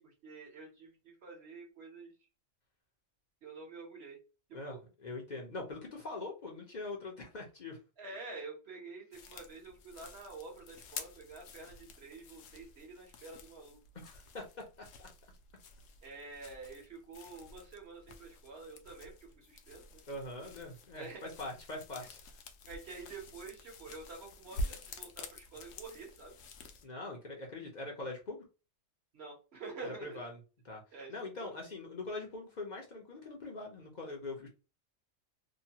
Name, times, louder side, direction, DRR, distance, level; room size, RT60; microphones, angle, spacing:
voice 1, 0.0-2.1 3.4-4.2 4.5-4.8 8.0-13.8 16.0-20.0 20.9-21.2 22.7-26.4 29.1-30.2 30.9-31.1 31.4-31.5, right 3 dB, 55° right, 0 dB, 1.1 m, -48 dB
voice 2, 4.5-7.8 13.9-15.1 20.1-22.2 26.8-28.4 29.8-30.4 30.6-30.8 31.1-34.5, left 2 dB, 45° left, 0 dB, 0.6 m, -43 dB
sound 1, 9.1-26.9, left 2 dB, 75° left, 0.9 m, -48 dB
2.9 x 2.2 x 2.7 m, 0.31 s
omnidirectional pair, 1.4 m